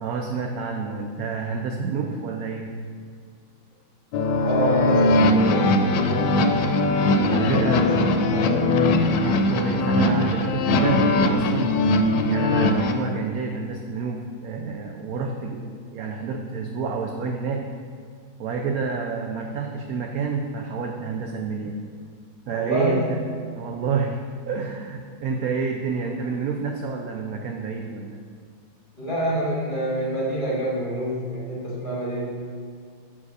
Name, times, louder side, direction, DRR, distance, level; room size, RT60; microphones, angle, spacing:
voice 1, 0.0-2.7 7.3-7.9 9.2-11.8 12.3-17.7 18.4-21.8 22.5-23.2 23.6-24.2 24.5-28.2, right 5 dB, 80° right, 3 dB, 0.8 m, -29 dB
sound 1, 4.1-12.9, left 2 dB, 75° left, 1.2 m, -20 dB
voice 2, 4.4-6.5 7.2-8.7 22.5-23.0 29.0-32.3, equal, 25° left, -6 dB, 1.7 m, -27 dB
5.6 x 4.8 x 6.5 m, 2.2 s
omnidirectional pair, 2.1 m